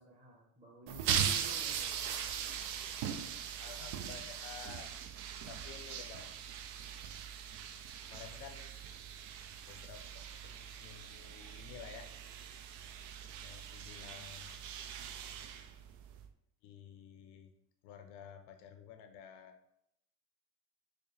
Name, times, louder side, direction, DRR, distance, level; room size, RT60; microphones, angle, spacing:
voice 1, 0.0-2.2, right 3 dB, 20° right, 1 dB, 0.8 m, -53 dB
sound 1, 0.9-16.3, right 8 dB, 85° right, 0.5 m, -40 dB
voice 2, 3.6-4.9 5.5-6.3 8.1-8.7 9.7-12.1 13.4-14.5 16.6-17.5 17.8-19.6, left 8 dB, 80° left, 6 dB, 0.5 m, -52 dB
4.7 x 2.1 x 3.2 m, 0.76 s
cardioid pair, 110°, 41 cm